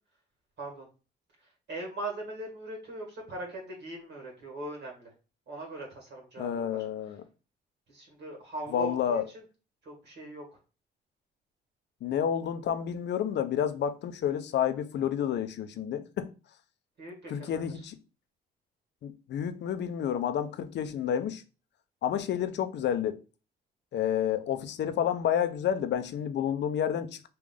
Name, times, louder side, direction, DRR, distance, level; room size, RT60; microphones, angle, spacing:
voice 1, 1.7-5.1 5.5-6.8 7.9-9.2 9.8-10.6 17.0-17.6, right 2 dB, 60° right, 1.5 m, -40 dB
voice 2, 6.4-7.2 8.7-9.3 12.0-16.3 17.3-18.0 19.0-21.4 22.0-23.2 23.9-27.3, left 9 dB, 60° left, 0.5 m, -30 dB
3.4 x 2.4 x 3.6 m
cardioid pair, 90°, 20 cm